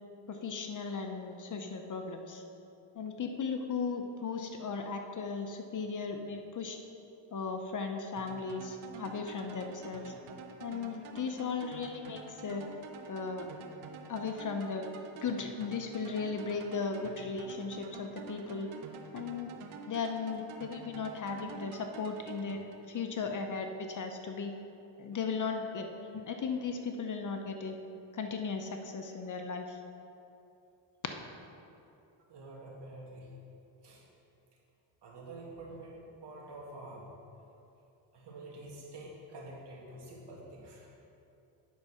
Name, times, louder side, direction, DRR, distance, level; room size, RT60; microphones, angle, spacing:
voice 1, 0.3-2.4 2.9-6.8 7.3-10.1 10.6-12.7 13.1-13.5 14.1-14.9 15.2-18.7 19.1-19.5 19.9-24.5 25.0-27.8 28.1-29.8 31.0-31.2, left 5 dB, 40° left, 5 dB, 0.8 m, -36 dB
sound 1, 8.2-23.2, right 4 dB, 75° right, 1.0 m, -48 dB
voice 2, 32.3-33.3 33.8-34.0 35.0-37.1 38.1-40.9, right 2 dB, 55° right, -3 dB, 2.4 m, -47 dB
9.5 x 5.6 x 6.3 m, 2.8 s
cardioid pair, 100°, 48 cm